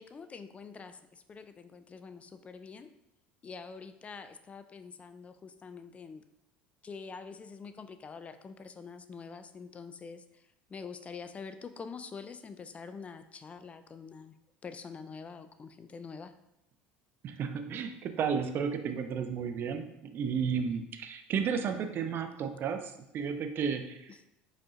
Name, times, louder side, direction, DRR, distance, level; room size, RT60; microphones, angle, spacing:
voice 1, 0.0-2.9 3.4-6.2 6.8-14.3 14.6-16.3 24.1-24.2, left 5 dB, 25° left, 10 dB, 0.4 m, -46 dB
voice 2, 17.2-24.1, right 6 dB, 50° right, 7 dB, 0.5 m, -33 dB
5.1 x 4.2 x 2.5 m, 0.85 s
supercardioid pair, 85°, 5 cm